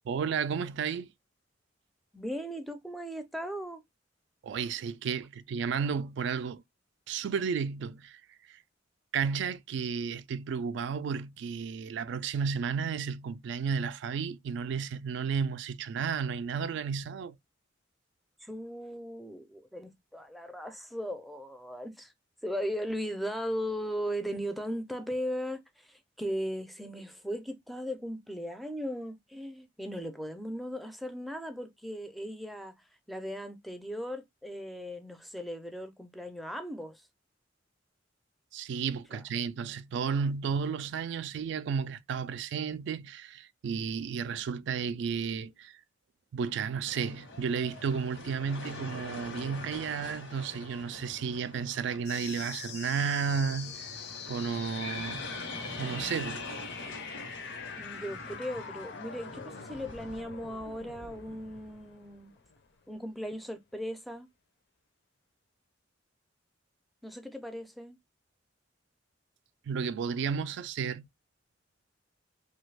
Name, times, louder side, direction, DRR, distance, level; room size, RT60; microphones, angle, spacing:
voice 1, 0.1-1.1 4.4-6.6 7.1-8.2 8.5-8.6 9.1-17.4 38.5-45.8 46.3-54.0 54.3-55.3 55.8-56.5 69.7-71.1, right 6 dB, 70° right, 0.3 m, -33 dB
voice 2, 2.1-3.8 18.4-22.1 22.4-32.7 33.1-37.0 39.1-39.2 57.8-62.3 62.9-64.3 67.0-68.0, equal, ahead, 0.4 m, -37 dB
sound 1, 46.8-60.2, left 2 dB, 85° left, 1.0 m, -44 dB
Whistle Hit, 52.0-63.1, left 6 dB, 60° left, 0.5 m, -44 dB
3.0 x 2.3 x 3.2 m
head